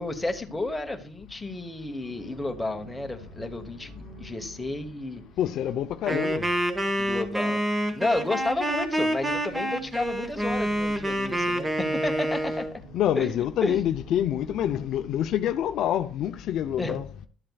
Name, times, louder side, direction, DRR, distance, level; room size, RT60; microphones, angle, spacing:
voice 1, 0.0-5.2 6.1-6.2 7.0-7.6 7.9-12.7 13.2-13.8 16.8-17.0, left 2 dB, 5° left, 1.1 m, -31 dB
sound 1, 2.0-6.9 8.9-16.0, right 1 dB, 70° right, 2.5 m, -48 dB
voice 2, 5.4-6.5 12.9-17.1, left 11 dB, 55° left, 0.6 m, -26 dB
Wind instrument woodwind instrument, 6.1-12.7, right 1 dB, 10° right, 1.3 m, -27 dB
12.0 x 7.5 x 2.3 m
cardioid pair, 140°, 0 cm